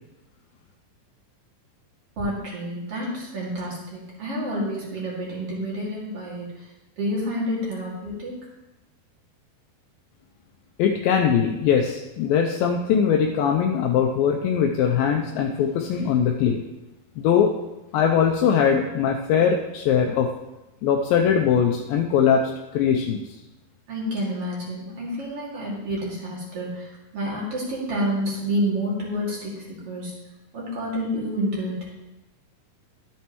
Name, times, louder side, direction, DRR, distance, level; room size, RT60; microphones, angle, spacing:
voice 1, 2.2-6.7 7.0-8.3 23.9-30.1 30.5-31.8, equal, 45° right, -5 dB, 2.9 m, -29 dB
voice 2, 10.8-16.6 17.2-17.5 17.9-20.3 20.8-23.2, left 7 dB, 80° left, 2 dB, 2.4 m, -21 dB
12.5 x 8.4 x 3.0 m, 0.99 s
omnidirectional pair, 4.3 m